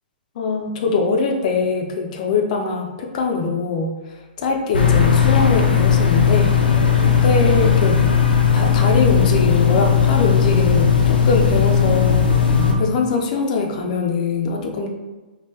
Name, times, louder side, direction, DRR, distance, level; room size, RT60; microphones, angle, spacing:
voice 1, 0.4-3.9 4.4-8.0 8.5-14.9, left 4 dB, 50° left, 3 dB, 0.6 m, -22 dB
sound 1, 4.7-12.7, left 7 dB, 90° left, 0.6 m, -16 dB
3.7 x 2.4 x 2.8 m, 1.2 s
hypercardioid pair, 130°, 5 cm